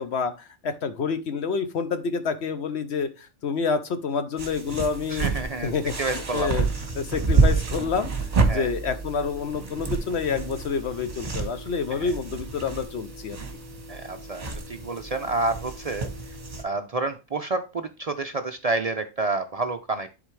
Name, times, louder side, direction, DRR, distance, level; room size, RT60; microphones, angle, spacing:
voice 1, 0.0-5.3 5.6-6.7 7.0-8.1 8.4-13.4, left 5 dB, 60° left, 10 dB, 0.9 m, -28 dB
sound 1, 4.4-16.6, right 4 dB, 30° right, 1.2 m, -28 dB
voice 2, 5.1-6.5 8.5-8.7 11.9-12.1 13.9-16.1 16.6-20.1, right 3 dB, 60° right, 8 dB, 0.4 m, -29 dB
11.0 x 4.0 x 3.2 m, 0.30 s
omnidirectional pair, 1.3 m